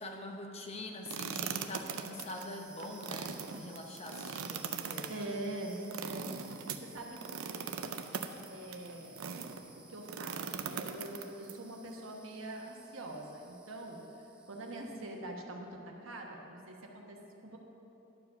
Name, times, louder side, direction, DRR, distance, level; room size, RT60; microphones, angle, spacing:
voice 1, 0.0-5.3, left 2 dB, 30° left, 3 dB, 0.8 m, -44 dB
sound 1, 1.1-9.6 10.1-11.5, right 6 dB, 90° right, 0.5 m, -40 dB
sound 2, 1.7-15.3, right 2 dB, 5° right, 0.6 m, -57 dB
voice 2, 5.1-7.7 8.5-9.2 9.5-14.0 14.5-17.6, right 1 dB, 70° right, 0 dB, 1.2 m, -44 dB
11.5 x 4.9 x 6.5 m, 2.9 s
head